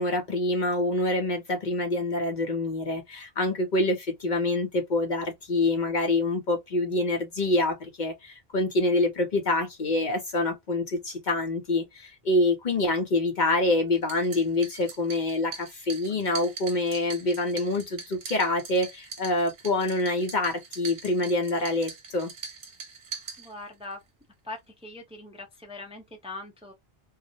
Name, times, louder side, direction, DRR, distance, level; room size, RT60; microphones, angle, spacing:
voice 1, 0.0-22.3, left 2 dB, 55° left, 0.7 m, -26 dB
sound 1, 13.9-23.9, right 5 dB, 60° right, 0.8 m, -42 dB
voice 2, 23.4-24.0 24.4-26.7, left 2 dB, 5° right, 0.5 m, -41 dB
2.3 x 2.0 x 2.6 m
omnidirectional pair, 1.0 m